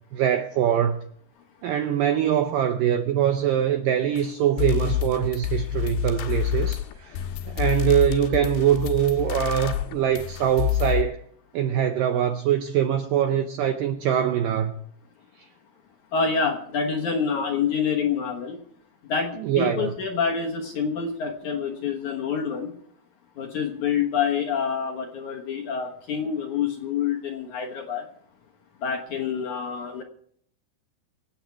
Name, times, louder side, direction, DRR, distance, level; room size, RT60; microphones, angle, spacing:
voice 1, 0.1-1.0 1.6-11.2 11.5-14.7 19.4-19.9, right 10 dB, 90° right, 1.9 m, -23 dB
sound 1, 4.2-4.3 4.6-11.0, left 13 dB, 80° left, 3.3 m, -27 dB
voice 2, 16.1-18.6 19.0-22.7 23.4-28.1 28.8-30.0, left 6 dB, 65° left, 2.0 m, -27 dB
24.5 x 9.0 x 4.6 m
omnidirectional pair, 5.0 m